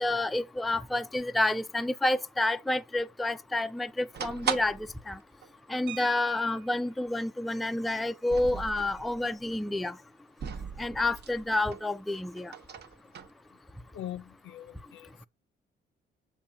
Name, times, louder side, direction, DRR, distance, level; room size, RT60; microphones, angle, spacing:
voice 1, 0.0-4.8 5.1-5.2 5.7-9.9 10.8-12.5, left 2 dB, ahead, 0.3 m, -29 dB
sound 1, 4.1-5.0 5.4-5.5 5.7-5.8 6.6-6.8 8.1-9.2 10.4-11.8 12.1-13.3, right 7 dB, 55° right, 1.0 m, -37 dB
sound 2, 5.9-6.9 8.4-8.5 8.9-9.0 9.4-9.7, right 15 dB, 70° right, 0.5 m, -46 dB
voice 2, 13.9-15.3, left 11 dB, 70° left, 0.7 m, -42 dB
7.0 x 2.6 x 5.7 m
cardioid pair, 90°, 20 cm